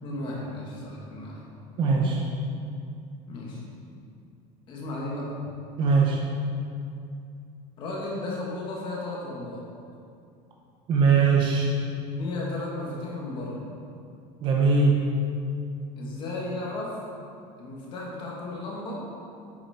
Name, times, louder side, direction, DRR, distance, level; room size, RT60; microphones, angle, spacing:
voice 1, 0.0-1.4 3.3-3.6 4.7-5.4 7.8-9.6 12.2-13.7 16.0-17.0 17.6-19.1, left 2 dB, 35° left, -3 dB, 1.8 m, -34 dB
voice 2, 1.8-2.2 5.8-6.2 10.9-11.7 14.4-14.9, right 4 dB, 35° right, -1 dB, 0.9 m, -20 dB
8.8 x 7.1 x 4.3 m, 2.5 s
cardioid pair, 175°, 15 cm